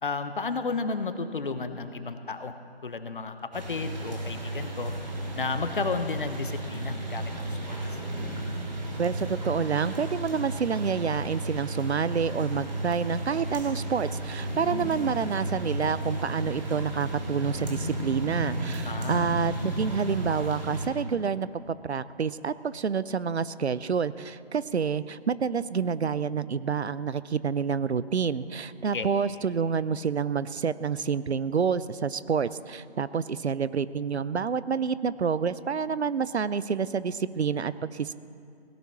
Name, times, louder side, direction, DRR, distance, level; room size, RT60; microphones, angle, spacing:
voice 1, 0.0-4.9 5.3-7.8 18.8-19.3 28.8-29.1, left 4 dB, 50° left, 9 dB, 1.0 m, -33 dB
sound 1, 3.5-20.9, right 1 dB, 40° right, 2.8 m, -33 dB
voice 2, 9.0-38.1, right 6 dB, 75° right, 16 dB, 0.6 m, -28 dB
17.0 x 10.0 x 6.0 m, 2.4 s
figure-of-eight pair, 160°, 33 cm